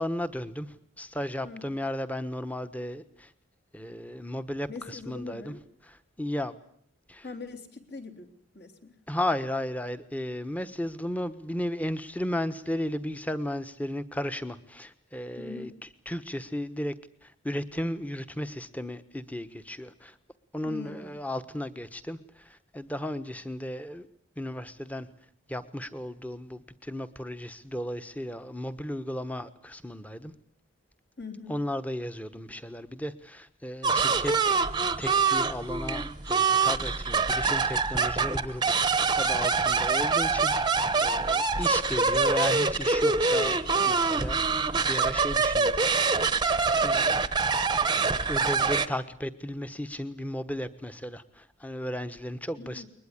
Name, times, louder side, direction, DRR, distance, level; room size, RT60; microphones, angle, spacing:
voice 1, 0.0-3.3 3.7-5.5 5.8-6.6 7.1-7.2 9.1-15.7 16.1-16.9 17.2-20.2 20.5-24.1 24.4-25.1 25.5-30.3 31.5-34.5 35.0-40.5 41.0-45.9 46.3-46.4 46.8-47.2 48.3-52.9, left 1 dB, 5° left, 11 dB, 1.2 m, -35 dB
voice 2, 4.7-5.6 7.2-9.0 15.4-15.8 20.6-21.2 31.2-31.6 52.6-52.9, left 4 dB, 50° left, 4 dB, 3.7 m, -42 dB
sound 1, 33.8-48.9, right 4 dB, 20° right, 1.0 m, -25 dB
22.0 x 21.0 x 9.9 m, 0.64 s
head